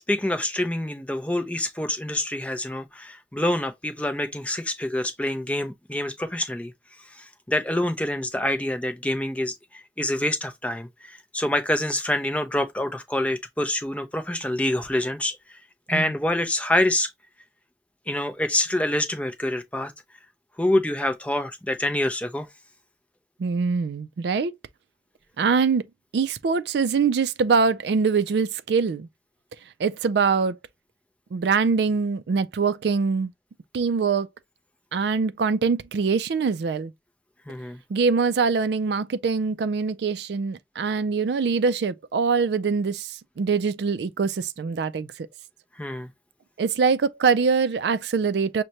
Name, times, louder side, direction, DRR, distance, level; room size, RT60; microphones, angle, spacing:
voice 1, 0.1-6.7 7.2-9.6 10.0-15.4 15.9-17.1 18.1-19.9 20.6-22.5 37.5-37.8 45.8-46.1, left 1 dB, 10° left, 0.4 m, -26 dB
voice 2, 23.4-24.5 25.4-25.9 26.1-29.1 29.8-30.6 31.3-33.3 33.7-34.3 34.9-36.9 37.9-45.3 46.6-48.6, right 5 dB, 75° right, 0.4 m, -23 dB
6.3 x 2.2 x 2.8 m
head